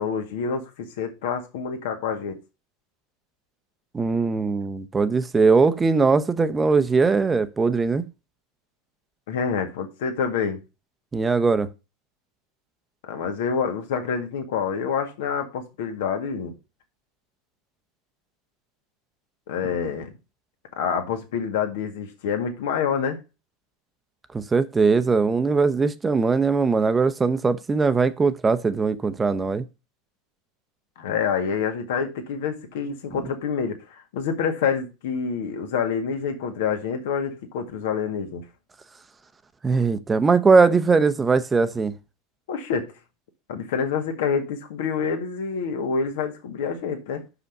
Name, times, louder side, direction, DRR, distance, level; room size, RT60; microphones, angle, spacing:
voice 1, 0.0-2.4 9.3-10.6 13.1-16.5 19.5-20.1 20.8-23.2 31.0-33.8 34.1-38.4 42.5-42.9 43.5-47.2, left 6 dB, 70° left, 1.9 m, -27 dB
voice 2, 3.9-8.1 11.1-11.7 24.3-29.6 39.6-41.9, right 4 dB, 20° right, 0.8 m, -20 dB
6.2 x 5.5 x 5.4 m
hypercardioid pair, 90°, 0 cm